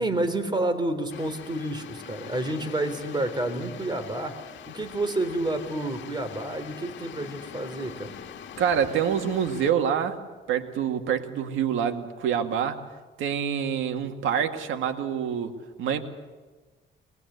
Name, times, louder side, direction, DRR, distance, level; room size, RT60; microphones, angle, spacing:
voice 1, 0.0-4.4 4.7-8.2, right 2 dB, 20° right, 7 dB, 3.4 m, -29 dB
sound 1, 1.1-9.7, left 9 dB, 65° left, 1.8 m, -43 dB
voice 2, 8.6-10.2 10.5-12.8 13.2-16.0, right 8 dB, 85° right, 5 dB, 2.1 m, -26 dB
23.0 x 21.0 x 8.2 m, 1.3 s
cardioid pair, 90°, 20 cm